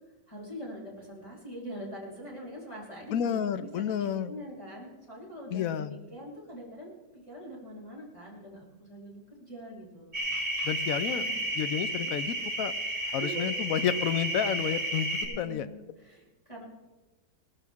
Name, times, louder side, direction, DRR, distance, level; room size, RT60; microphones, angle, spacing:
voice 1, 0.3-10.2 11.1-11.4 12.0-12.1 13.1-13.5 15.2-16.6, equal, 15° left, -5 dB, 4.0 m, -43 dB
voice 2, 3.1-4.3 5.5-5.9 10.6-11.3 11.5-12.7 13.1-15.1 15.4-15.7, left 9 dB, 70° left, 13 dB, 0.8 m, -30 dB
sound 1, 10.1-15.3, right 1 dB, 45° right, 5.7 m, -32 dB
19.0 x 14.0 x 3.6 m, 1.2 s
omnidirectional pair, 2.0 m